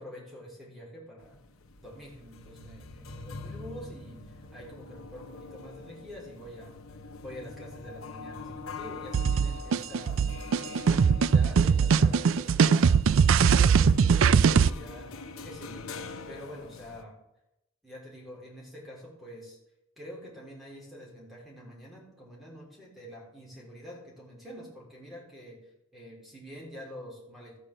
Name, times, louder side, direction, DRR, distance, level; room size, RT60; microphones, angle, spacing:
voice 1, 0.0-1.4 1.8-6.8 7.2-10.3 10.6-13.0 13.6-15.9 16.3-17.1 17.8-19.6 20.0-27.6, equal, ahead, -4 dB, 3.8 m, -46 dB
sound 1, 1.2-17.0, left 3 dB, 90° left, 1.0 m, -44 dB
sound 2, 9.1-14.7, right 6 dB, 70° right, 0.4 m, -21 dB
14.0 x 6.7 x 7.3 m, 0.86 s
head